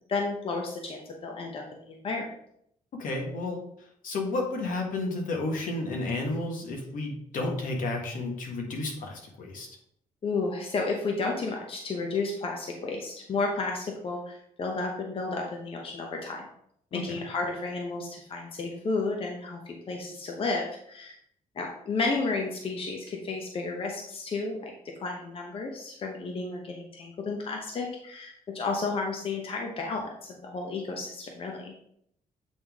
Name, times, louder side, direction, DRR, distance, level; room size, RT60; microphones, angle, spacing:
voice 1, 0.1-2.3 10.2-16.4 16.9-21.1 21.5-24.7 25.0-31.7, left 3 dB, 40° left, 1 dB, 0.9 m, -32 dB
voice 2, 2.9-9.7 16.9-17.0, left 2 dB, 70° left, 1 dB, 1.4 m, -32 dB
8.1 x 3.6 x 3.5 m, 0.71 s
cardioid pair, 140°, 14 cm